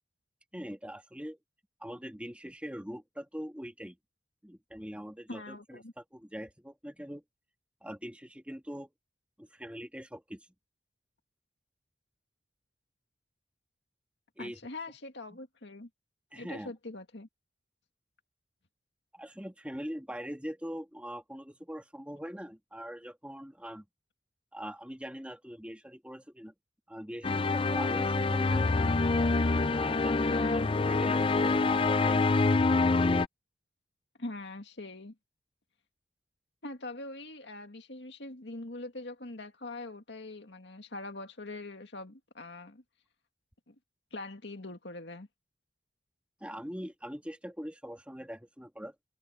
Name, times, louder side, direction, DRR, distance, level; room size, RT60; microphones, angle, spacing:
voice 1, 0.5-1.4 1.8-4.0 4.4-7.2 7.8-8.9 9.4-10.5 14.4-14.6 16.3-16.7 19.1-23.9 24.5-26.5 26.9-29.0 29.7-30.4 30.8-32.4 46.4-48.9, equal, 5° right, 2.0 m, -42 dB
voice 2, 5.3-5.9 14.4-15.9 16.3-17.3 30.3-30.7 34.2-35.1 36.6-42.8 43.7-43.8 44.1-45.3, left 2 dB, 65° left, 2.1 m, -43 dB
sound 1, 27.2-33.3, left 3 dB, 30° left, 0.5 m, -26 dB
head